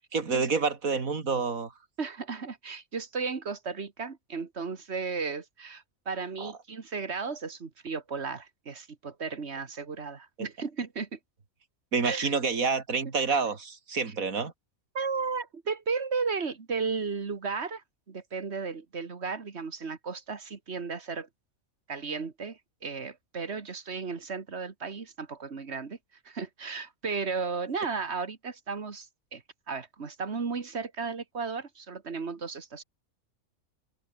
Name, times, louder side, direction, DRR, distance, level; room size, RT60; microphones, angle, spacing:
voice 1, 0.1-1.7 6.4-6.5 11.9-14.5, right 4 dB, 75° right, 2.9 m, -28 dB
voice 2, 2.0-11.2 12.0-12.4 13.3-13.4 14.9-21.3 21.9-26.0 26.3-32.8, right 5 dB, 50° right, 2.0 m, -34 dB
omnidirectional pair, 1.5 m